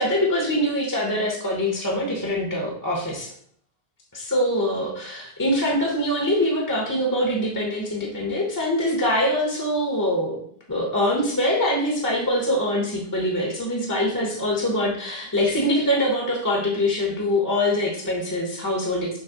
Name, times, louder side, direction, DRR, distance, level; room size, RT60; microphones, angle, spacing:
voice 1, 0.0-3.3 4.1-10.4 10.7-19.2, left 1 dB, 20° left, -2 dB, 0.7 m, -24 dB
5.6 x 3.0 x 2.8 m, 0.64 s
omnidirectional pair, 1.0 m